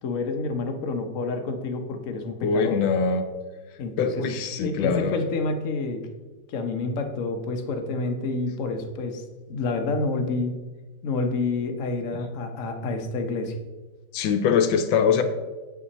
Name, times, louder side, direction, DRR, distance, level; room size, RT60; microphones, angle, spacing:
voice 1, 0.0-2.8 3.8-4.2 4.6-6.0 6.5-9.2 9.5-10.6 11.0-13.6, left 3 dB, 55° left, 5 dB, 1.0 m, -28 dB
voice 2, 2.4-3.3 4.0-5.2 14.1-15.2, left 6 dB, 85° left, 8 dB, 1.4 m, -23 dB
7.9 x 5.6 x 4.1 m, 1.3 s
omnidirectional pair, 2.0 m